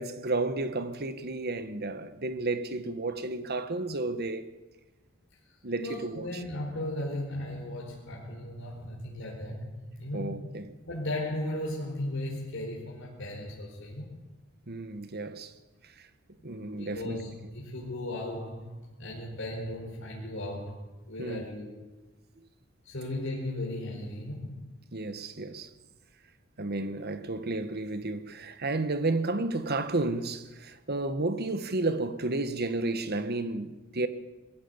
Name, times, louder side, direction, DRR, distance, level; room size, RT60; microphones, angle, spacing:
voice 1, 0.0-4.5 5.6-6.4 10.1-10.7 14.7-15.5 15.8-16.1 16.4-17.2 21.2-21.4 24.9-25.7 26.6-34.1, right 2 dB, 50° right, 1.5 m, -32 dB
voice 2, 5.8-10.5 10.9-14.2 16.7-21.8 22.8-24.7, left 1 dB, 65° left, 4.8 m, -36 dB
21.0 x 16.0 x 8.1 m
head